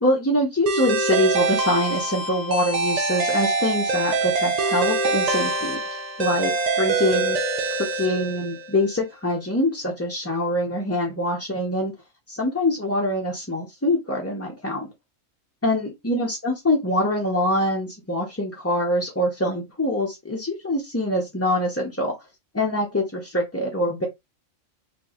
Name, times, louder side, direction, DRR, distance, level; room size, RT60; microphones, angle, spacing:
voice 1, 0.0-7.4 7.8-11.9 12.3-14.9 15.6-22.1 22.5-24.1, left 1 dB, 15° left, 0.5 m, -24 dB
sound 1, 0.7-8.8, right 3 dB, 55° right, 0.4 m, -24 dB
4.3 x 2.6 x 2.9 m
omnidirectional pair, 1.4 m